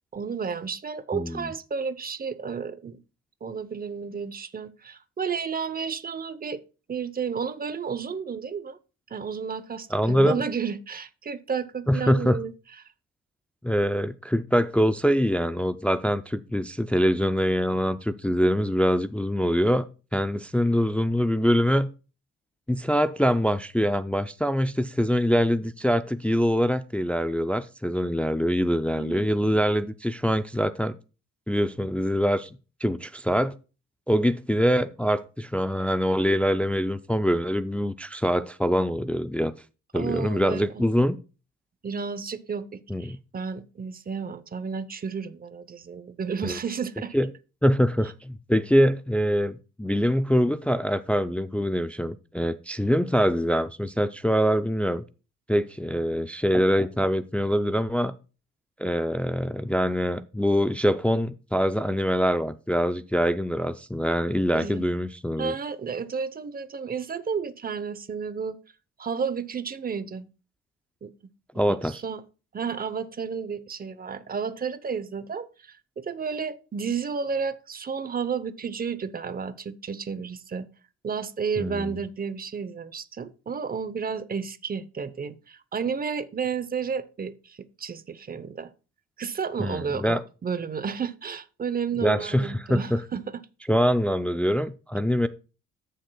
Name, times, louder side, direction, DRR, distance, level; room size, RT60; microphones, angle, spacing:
voice 1, 0.1-3.0 3.4-6.6 6.9-8.8 9.1-12.5 28.9-29.2 39.9-40.9 41.8-47.2 64.5-64.8 65.4-68.6 69.0-70.3 71.0-71.1 71.7-72.2 72.5-80.7 81.0-88.7 89.2-93.2, right 6 dB, 30° right, 0.8 m, -32 dB
voice 2, 1.1-1.5 9.9-10.4 11.9-12.4 13.6-19.9 20.1-21.9 22.7-30.9 31.5-33.6 34.1-39.5 39.9-41.2 42.9-43.2 46.4-46.6 47.1-47.3 47.6-55.0 55.5-58.1 58.8-65.5 71.6-72.0 81.6-81.9 89.6-90.2 92.0-93.0 93.7-95.3, equal, 5° left, 0.4 m, -24 dB
14.0 x 6.6 x 2.3 m
cardioid pair, 90°, 30 cm